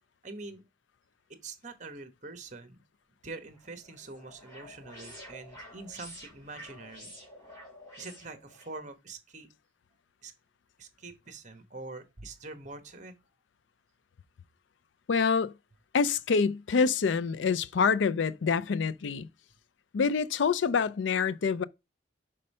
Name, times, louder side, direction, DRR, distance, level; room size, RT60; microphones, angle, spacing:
voice 1, 0.2-0.6 1.4-2.8 3.2-7.1 8.0-9.5 10.2-10.3 10.8-13.1, right 3 dB, 40° right, 1.2 m, -44 dB
sound 1, 3.5-8.7, equal, 20° left, 4.8 m, -49 dB
voice 2, 15.1-15.5 15.9-19.3 19.9-21.6, left 5 dB, 80° left, 0.4 m, -26 dB
5.4 x 5.2 x 5.4 m
head